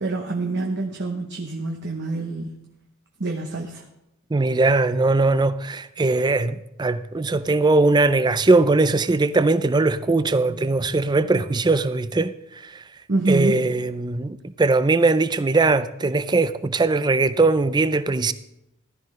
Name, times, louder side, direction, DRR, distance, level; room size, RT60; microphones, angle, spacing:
voice 1, 0.0-2.6 3.2-3.8 13.1-13.6, right 2 dB, 50° right, 0.9 m, -26 dB
voice 2, 4.3-12.8 13.3-18.3, right 3 dB, 20° right, 0.4 m, -20 dB
14.5 x 12.0 x 3.2 m
head